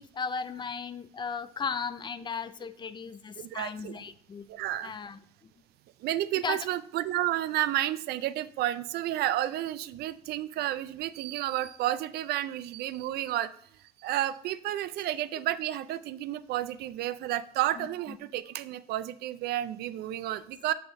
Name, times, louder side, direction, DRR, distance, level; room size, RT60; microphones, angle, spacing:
voice 1, 0.0-4.4 4.8-5.2 6.4-6.6 17.8-17.9, left 5 dB, 25° left, 14 dB, 0.4 m, -36 dB
voice 2, 3.4-4.0 4.5-4.9 6.0-13.5 14.0-20.7, right 13 dB, 70° right, 15 dB, 0.4 m, -31 dB
8.1 x 3.5 x 3.6 m, 0.62 s
cardioid pair, 110°, 17 cm